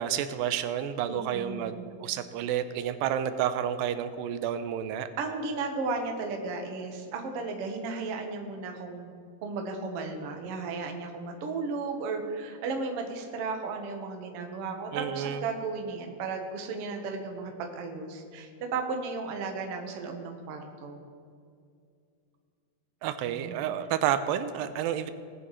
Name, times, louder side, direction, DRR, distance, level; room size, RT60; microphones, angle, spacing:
voice 1, 0.0-5.1 14.9-15.5 23.0-25.1, right 10 dB, 85° right, 11 dB, 2.3 m, -30 dB
voice 2, 1.1-1.8 5.2-9.1 9.4-21.0 23.3-23.5, right 4 dB, 65° right, 3 dB, 1.5 m, -35 dB
19.5 x 8.2 x 3.1 m, 2.4 s
omnidirectional pair, 4.1 m